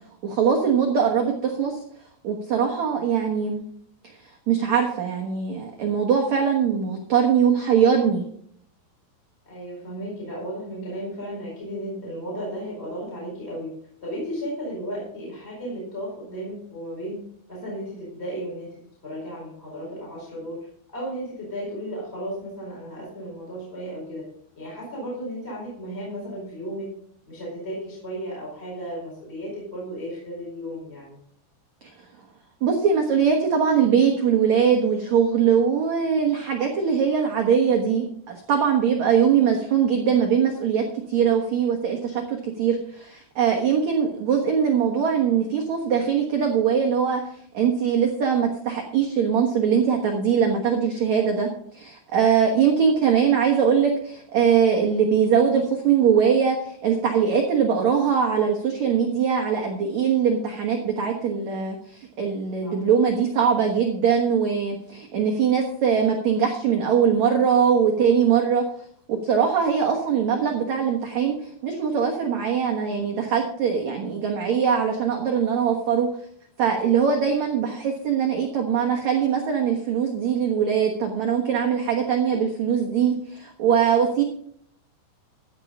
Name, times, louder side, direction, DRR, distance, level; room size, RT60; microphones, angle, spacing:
voice 1, 0.2-1.8 2.2-3.6 4.5-8.2 32.6-47.2 47.5-68.6 69.1-76.1 76.6-84.2, right 7 dB, 65° right, 1 dB, 1.8 m, -22 dB
voice 2, 9.4-13.7 14.0-17.2 17.5-20.7 20.9-24.3 24.5-26.9 27.3-31.2 62.6-62.9 82.2-82.4, equal, 15° left, -5 dB, 4.4 m, -34 dB
15.0 x 7.2 x 5.4 m, 0.65 s
omnidirectional pair, 5.2 m